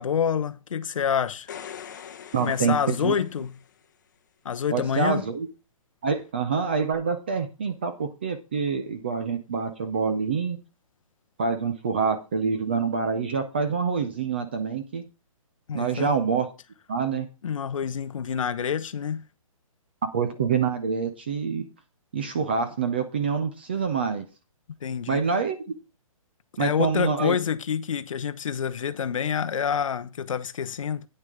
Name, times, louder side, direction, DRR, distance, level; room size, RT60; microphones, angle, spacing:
voice 1, 0.0-1.5 2.4-3.6 4.4-5.3 15.7-16.1 17.4-19.2 24.8-25.2 26.6-31.1, left 7 dB, 65° left, 0.7 m, -27 dB
sound 1, 1.3-3.8 6.9-7.0, left 8 dB, 35° left, 0.8 m, -43 dB
voice 2, 2.3-3.1 4.7-5.5 6.0-10.6 11.4-15.0 15.7-16.5 16.9-17.3 20.1-21.7 22.1-24.3 25.1-25.6 26.6-27.4, right 5 dB, 20° right, 0.5 m, -26 dB
9.2 x 6.6 x 4.9 m
hypercardioid pair, 175°, 18 cm